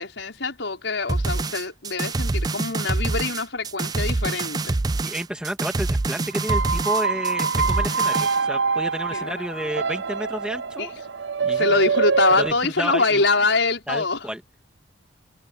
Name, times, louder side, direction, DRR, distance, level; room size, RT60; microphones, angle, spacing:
voice 1, 0.0-4.8 9.1-9.7 10.8-10.9 11.5-14.3, left 3 dB, 80° left, 5.5 m, -24 dB
sound 1, 1.1-8.4, right 2 dB, 20° right, 0.4 m, -26 dB
voice 2, 5.0-10.9 11.4-11.9 12.3-13.3 13.9-14.4, equal, 5° right, 2.1 m, -31 dB
sound 2, 6.3-12.5, right 5 dB, 70° right, 0.6 m, -25 dB
head